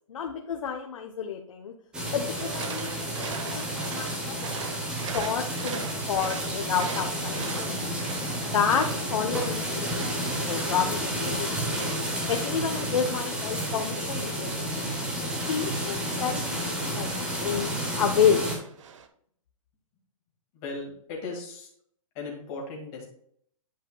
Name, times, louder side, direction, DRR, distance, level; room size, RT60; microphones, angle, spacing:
voice 1, 0.1-1.7 2.1-2.9 3.2-4.6 4.9-7.8 8.3-11.6 12.3-14.7 15.2-17.1 17.4-18.4, left 7 dB, 65° left, 3 dB, 0.9 m, -30 dB
sound 1, 1.9-18.6, equal, 5° right, 0.8 m, -31 dB
sound 2, 2.4-19.1, right 6 dB, 60° right, 0.8 m, -42 dB
voice 2, 20.5-21.7 22.1-23.1, left 3 dB, 25° left, -1 dB, 1.9 m, -37 dB
10.0 x 5.2 x 2.2 m, 0.67 s
hypercardioid pair, 170°, 18 cm